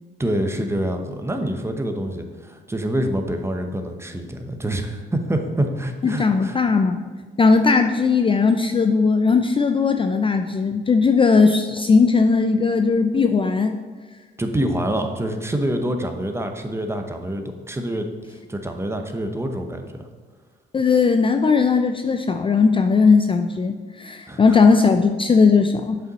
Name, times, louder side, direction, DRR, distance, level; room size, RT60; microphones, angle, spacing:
voice 1, 0.2-6.6 14.4-18.1 18.5-20.1 24.3-24.6, right 1 dB, 15° right, 5 dB, 0.8 m, -26 dB
voice 2, 6.0-7.0 7.4-13.8 20.7-26.0, left 4 dB, 25° left, 6 dB, 0.4 m, -18 dB
7.4 x 5.5 x 4.0 m, 1.4 s
cardioid pair, 90°, 20 cm